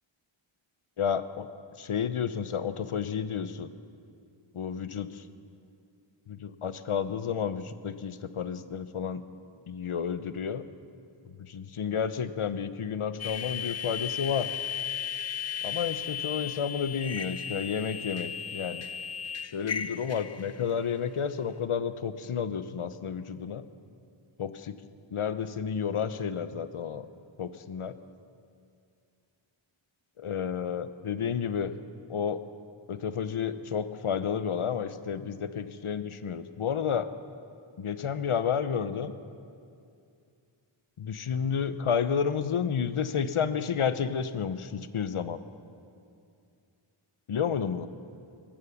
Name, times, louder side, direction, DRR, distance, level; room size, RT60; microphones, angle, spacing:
voice 1, 1.0-1.5 1.8-3.7 4.5-5.1 6.3-9.2 9.7-10.6 11.4-14.5 15.6-18.9 19.5-23.6 24.4-24.8 25.1-27.1 27.4-27.9 30.2-31.7 32.1-32.4 32.9-37.1 37.8-39.1 41.0-45.4 47.3-47.9, left 7 dB, 80° left, 12 dB, 0.8 m, -31 dB
sound 1, 13.2-20.8, left 8 dB, 35° left, 0.4 m, -35 dB
20.5 x 8.9 x 7.1 m, 2.4 s
wide cardioid pair, 40°, 49 cm